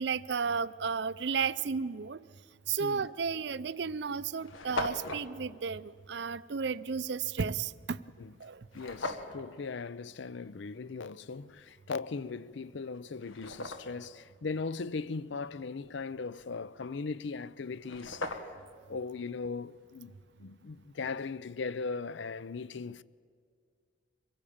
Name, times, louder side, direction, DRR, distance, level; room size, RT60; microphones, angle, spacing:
voice 1, 0.0-2.2 2.7-8.0 8.4-8.6, right 5 dB, 60° right, 0.5 m, -33 dB
sound 1, 2.9-3.1 3.8-3.9 4.1-4.2 4.4-5.3 8.7-9.4 12.3-12.4 12.9-14.1 17.4-17.5 17.7-18.7, left 2 dB, 85° left, 1.5 m, -38 dB
voice 2, 8.7-18.5 18.9-20.1 20.4-23.0, left 4 dB, 65° left, 0.5 m, -38 dB
23.5 x 16.0 x 8.7 m
head